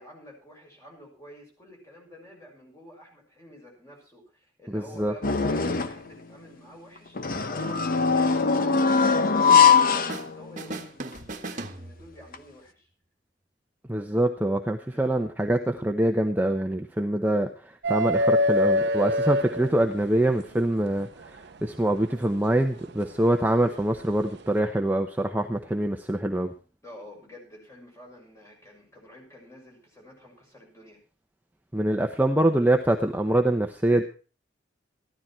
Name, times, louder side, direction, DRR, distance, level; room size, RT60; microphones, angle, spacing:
voice 1, 0.0-12.9 14.8-15.1 26.8-31.0, equal, 15° left, -1 dB, 6.6 m, -48 dB
voice 2, 4.7-5.1 13.9-26.5 31.7-34.0, right 1 dB, 10° right, 4 dB, 0.9 m, -25 dB
sound 1, 5.2-6.1 7.2-10.8 11.2-11.3 12.3-12.4, left 5 dB, 50° left, 1.0 m, -21 dB
sound 2, 9.5-10.3 10.6-12.3, right 2 dB, 45° right, 1.4 m, -38 dB
sound 3, 17.8-20.2 21.9-22.0 23.8-24.0, left 1 dB, 65° right, 0.8 m, -23 dB
14.0 x 12.5 x 4.4 m, 0.35 s
head